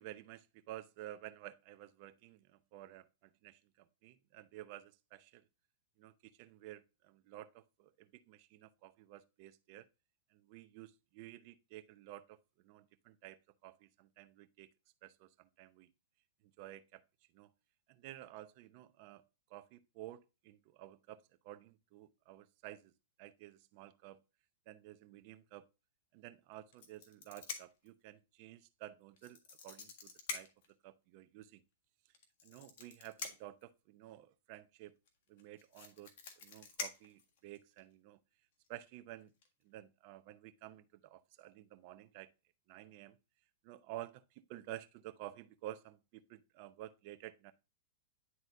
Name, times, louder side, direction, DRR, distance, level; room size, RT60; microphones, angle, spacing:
voice 1, 0.0-5.4 6.0-9.9 10.3-14.7 15.0-15.9 16.4-17.0 17.3-17.5 17.9-19.2 19.5-22.9 23.2-24.2 24.7-25.7 26.1-30.5 30.8-31.6 32.4-34.9 35.3-38.2 38.7-39.3 39.6-42.3 42.7-43.2 43.6-47.5, right 14 dB, 40° right, 0.7 m, -52 dB
sound 1, 26.7-27.9 29.2-30.7 32.1-33.6 35.1-35.2 35.4-37.8 38.6-38.9 39.2-39.5, left 5 dB, 55° left, 1.7 m, -46 dB
11.0 x 3.9 x 2.6 m
supercardioid pair, 155°, 0 cm